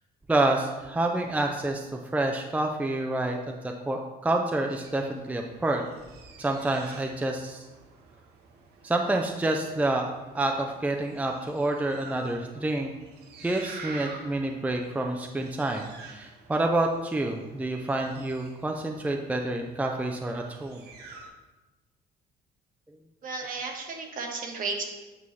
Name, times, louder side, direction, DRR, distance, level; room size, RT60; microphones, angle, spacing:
voice 1, 0.3-3.4 3.6-5.8 6.4-7.7 8.8-12.9 13.4-20.8, right 2 dB, 10° right, 2 dB, 0.5 m, -28 dB
sound 1, 4.7-21.3, right 3 dB, 75° right, 1.1 m, -49 dB
voice 2, 23.2-24.8, right 4 dB, 55° right, 2 dB, 1.4 m, -33 dB
8.3 x 5.4 x 3.2 m, 1.1 s
cardioid pair, 110°, 17 cm